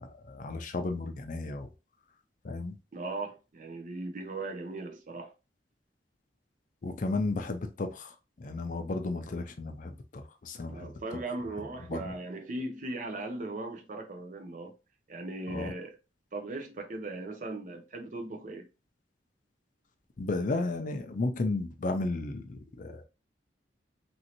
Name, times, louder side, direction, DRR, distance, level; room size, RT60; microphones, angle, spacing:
voice 1, 0.0-1.7 2.4-2.8 6.8-10.9 11.9-12.1 15.5-15.7 20.2-23.0, left 2 dB, 45° left, 0.4 m, -34 dB
voice 2, 2.9-5.3 10.7-14.7 15.1-16.0 16.3-18.7, right 2 dB, 45° right, 0.5 m, -38 dB
3.0 x 2.6 x 2.8 m
head